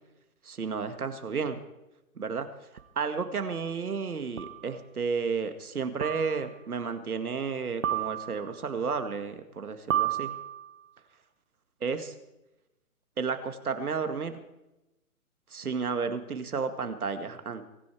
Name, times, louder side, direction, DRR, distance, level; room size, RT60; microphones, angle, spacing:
voice 1, 0.4-1.6 2.2-2.5 3.0-10.3 11.8-12.1 13.2-14.4 15.5-17.7, right 5 dB, 80° right, 9 dB, 2.2 m, -32 dB
sound 1, 2.8-2.9 4.4-4.7 6.0-6.6 7.8-8.6 9.9-10.8, right 11 dB, 60° right, 1.4 m, -32 dB
23.5 x 10.0 x 4.7 m, 0.93 s
hypercardioid pair, 145°, 44 cm